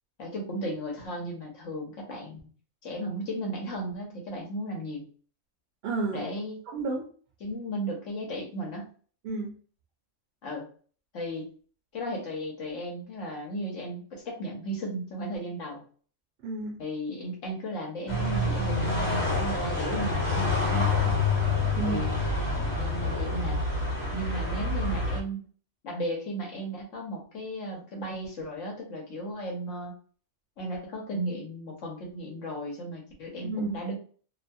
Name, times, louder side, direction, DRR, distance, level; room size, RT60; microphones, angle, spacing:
voice 1, 0.2-2.4 2.8-5.1 6.1-6.6 7.4-8.9 10.4-10.7 11.1-11.5 11.9-15.8 16.8-21.2 21.8-22.1 22.8-23.6 24.1-25.5 25.8-29.9 30.6-34.0, right 1 dB, 80° left, -1 dB, 1.1 m, -35 dB
voice 2, 5.8-6.2 6.7-7.1 9.2-9.6 16.4-16.8 21.7-22.1 33.4-33.8, right 3 dB, 65° right, -1 dB, 0.7 m, -31 dB
sound 1, 18.1-25.2, left 3 dB, 60° left, 1.2 m, -27 dB
2.6 x 2.2 x 2.6 m, 0.42 s
omnidirectional pair, 1.3 m